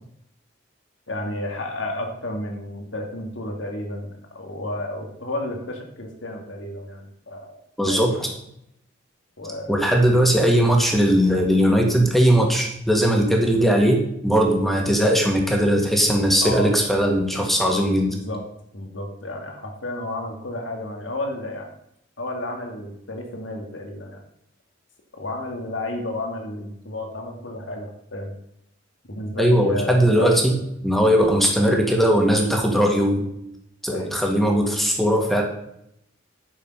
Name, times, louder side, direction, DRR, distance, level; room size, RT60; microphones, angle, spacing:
voice 1, 1.1-7.6 7.9-8.3 9.4-9.8 14.7-15.0 16.4-16.7 17.3-17.4 18.1-18.4 18.7-21.7 22.2-24.2 25.2-28.3 29.1-30.4 33.9-34.2, left 1 dB, 80° left, 2 dB, 2.2 m, -32 dB
voice 2, 7.8-8.3 9.7-18.2 29.4-30.5 30.8-33.3 33.8-35.4, equal, ahead, 1 dB, 1.8 m, -19 dB
10.5 x 6.7 x 5.3 m, 0.75 s
head